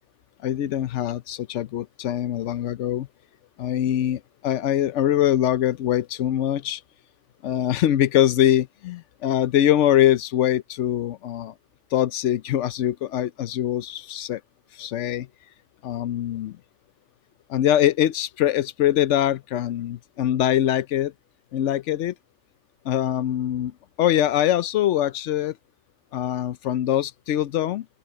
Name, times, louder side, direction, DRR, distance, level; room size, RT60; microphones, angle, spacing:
voice 1, 0.4-3.1 3.6-6.8 7.4-11.5 11.9-14.4 14.8-15.3 15.8-16.6 17.5-21.1 21.5-22.1 22.8-25.6 26.1-27.9, left 11 dB, 65° left, 0.9 m, -23 dB
open air
omnidirectional pair, 1.4 m